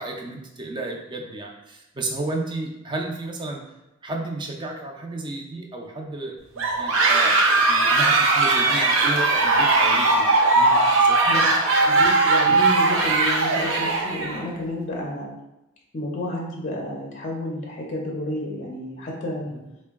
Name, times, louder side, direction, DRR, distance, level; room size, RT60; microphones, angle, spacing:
voice 1, 0.0-3.6 4.0-7.4 7.7-11.2 12.5-12.6 19.4-19.6, right 2 dB, 25° right, 1 dB, 0.4 m, -32 dB
sound 1, 6.6-14.4, right 3 dB, 80° right, 0.6 m, -19 dB
voice 2, 11.9-15.3 15.9-19.5, left 1 dB, 40° left, -1 dB, 0.5 m, -30 dB
3.6 x 2.2 x 3.4 m, 0.95 s
head